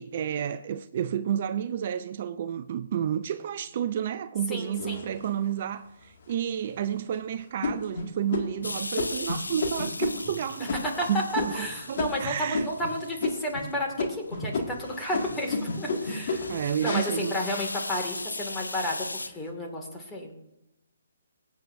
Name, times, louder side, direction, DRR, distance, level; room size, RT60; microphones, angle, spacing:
voice 1, 0.0-10.7 11.1-12.7 16.5-17.4, right 9 dB, 45° right, 0.4 m, -31 dB
voice 2, 4.5-5.1 10.6-20.3, equal, 10° left, 2.1 m, -32 dB
sound 1, 4.8-5.6 6.2-6.3 6.8-7.1 7.6-12.9 13.2-13.7 14.0-18.3 18.8-19.3, left 3 dB, 55° left, 2.0 m, -32 dB
sound 2, 8.6-13.8 14.3-14.4 14.8-19.3, left 2 dB, 90° left, 0.6 m, -39 dB
21.0 x 8.3 x 2.6 m
figure-of-eight pair, 140°, 0 cm